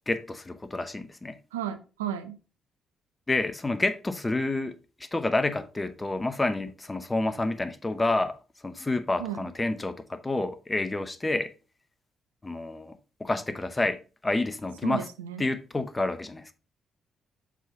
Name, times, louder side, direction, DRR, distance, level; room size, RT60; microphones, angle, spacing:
voice 1, 0.1-1.3 3.3-4.8 5.1-8.4 8.6-11.5 12.4-12.9 13.2-15.0 15.4-16.5, left 2 dB, 25° left, 0.8 m, -29 dB
voice 2, 1.5-2.4 9.2-9.5 14.8-15.4, right 10 dB, 90° right, 0.6 m, -34 dB
7.3 x 4.1 x 3.9 m
hypercardioid pair, 45°, 0 cm